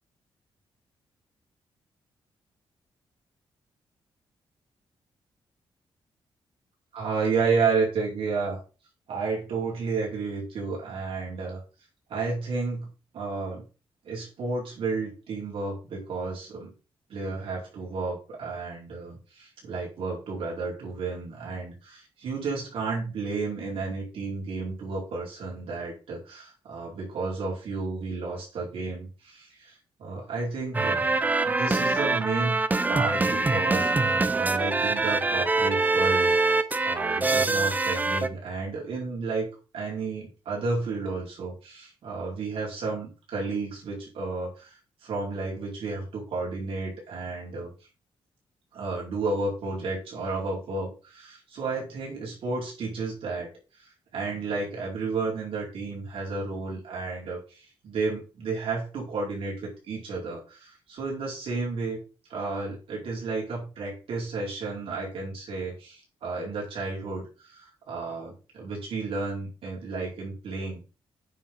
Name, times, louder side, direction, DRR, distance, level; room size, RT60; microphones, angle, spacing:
voice 1, 6.9-8.6 9.1-11.6 12.1-12.9 13.1-13.6 14.0-16.7 17.1-31.0 31.4-32.6 32.9-39.5 39.7-47.7 48.7-62.0 62.3-70.8, right 4 dB, 75° right, -4 dB, 4.4 m, -32 dB
sound 1, 30.7-38.3, right 3 dB, 15° right, 0.6 m, -24 dB
9.2 x 6.0 x 3.9 m, 0.33 s
cardioid pair, 125°, 10 cm